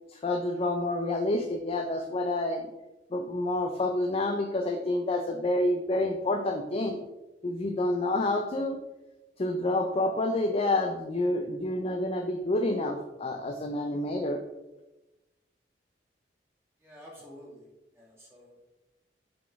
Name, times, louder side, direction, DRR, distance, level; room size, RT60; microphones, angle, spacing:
voice 1, 0.1-2.7 3.1-7.0 7.4-8.8 9.4-14.4, left 2 dB, 35° left, 4 dB, 0.5 m, -28 dB
voice 2, 16.8-17.7 17.9-18.6, equal, 15° right, -6 dB, 2.1 m, -50 dB
7.6 x 4.1 x 3.5 m, 1.0 s
head